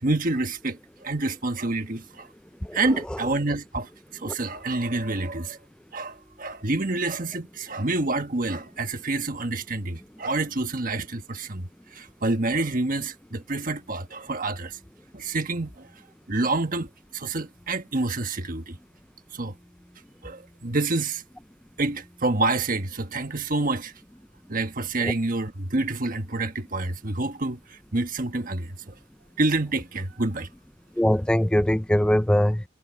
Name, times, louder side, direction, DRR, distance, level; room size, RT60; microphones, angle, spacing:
voice 1, 0.0-2.3 2.7-5.6 5.9-14.8 15.1-15.9 16.3-18.8 19.3-19.5 20.2-21.2 21.8-23.9 24.5-28.9 29.4-30.5, right 2 dB, 45° right, 1.4 m, -28 dB
voice 2, 2.6-3.2 4.3-4.4 25.0-25.1 31.0-32.6, equal, 5° left, 0.4 m, -22 dB
head